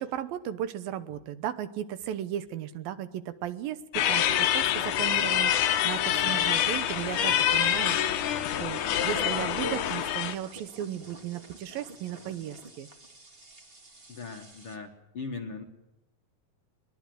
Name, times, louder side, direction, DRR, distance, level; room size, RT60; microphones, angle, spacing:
voice 1, 0.0-3.8 4.1-8.0 8.6-12.9, right 11 dB, 75° right, 12 dB, 2.7 m, -35 dB
sound 1, 3.9-10.3, left 11 dB, 65° left, 2.4 m, -26 dB
sound 2, 6.6-14.8, right 3 dB, 25° right, 1.2 m, -48 dB
voice 2, 14.1-15.6, left 4 dB, 50° left, 3 dB, 1.8 m, -39 dB
22.0 x 21.5 x 7.8 m, 0.92 s
omnidirectional pair, 4.2 m